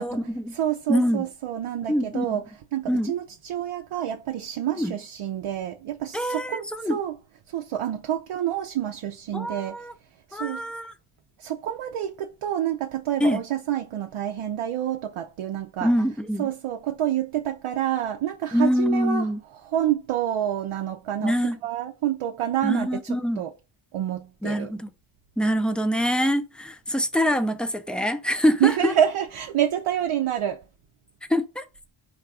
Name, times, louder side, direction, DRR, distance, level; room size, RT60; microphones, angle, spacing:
voice 1, 0.0-0.6 0.9-1.2 1.9-2.4 2.9-3.1 4.8-4.9 6.1-7.0 9.3-9.9 10.3-10.9 13.2-13.4 15.8-16.5 18.5-19.4 21.2-21.6 22.6-23.4 24.4-24.9 25.4-28.9 31.3-31.6, equal, ahead, 0.4 m, -24 dB
voice 2, 0.5-2.4 2.7-7.1 7.5-9.8 10.3-10.6 11.4-15.9 16.4-19.3 19.7-21.3 21.6-23.5 23.9-24.7 28.6-30.6, right 11 dB, 80° right, 0.6 m, -28 dB
4.8 x 2.3 x 4.7 m
cardioid pair, 70°, 50 cm